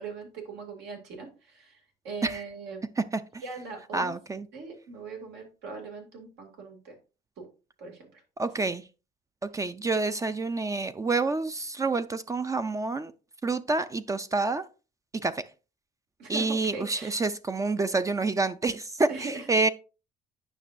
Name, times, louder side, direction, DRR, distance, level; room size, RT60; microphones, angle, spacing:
voice 1, 0.0-2.8 3.4-4.1 4.5-7.0 7.4-7.5 7.8-8.2 16.2-17.1 19.1-19.7, right 4 dB, 80° right, 2.4 m, -40 dB
voice 2, 3.0-3.4 3.9-4.5 8.4-8.8 9.4-13.1 13.4-14.7 15.2-15.5 16.3-19.7, right 3 dB, 20° right, 0.4 m, -28 dB
9.1 x 5.8 x 2.6 m
cardioid pair, 110°, 17 cm